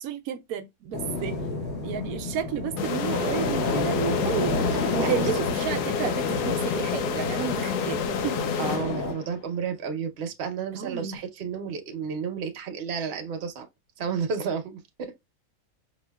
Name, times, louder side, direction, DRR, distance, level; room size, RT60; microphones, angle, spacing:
voice 1, 0.0-1.4 1.8-4.6 4.9-8.7 10.7-11.2, right 9 dB, 70° right, 1.0 m, -32 dB
sound 1, 0.9-9.1, left 2 dB, 45° left, 1.7 m, -31 dB
sound 2, 2.8-9.4, left 6 dB, 80° left, 1.1 m, -29 dB
voice 2, 8.6-13.7 14.0-15.2, right 6 dB, 50° right, 0.8 m, -31 dB
4.9 x 2.7 x 2.2 m
omnidirectional pair, 1.7 m